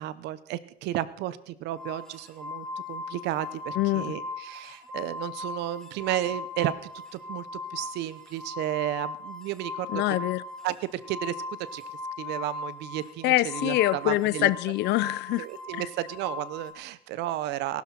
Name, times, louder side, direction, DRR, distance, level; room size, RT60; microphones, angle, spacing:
voice 1, 0.0-6.7 7.1-10.0 10.6-11.3 11.7-11.8 12.2-14.5 15.4-17.8, right 14 dB, 90° right, 0.8 m, -33 dB
sound 1, 1.8-16.7, left 3 dB, 5° left, 2.3 m, -38 dB
voice 2, 3.8-4.1 9.9-10.4 13.2-15.5, left 17 dB, 80° left, 0.6 m, -25 dB
19.5 x 12.0 x 4.4 m
cardioid pair, 110°, 17 cm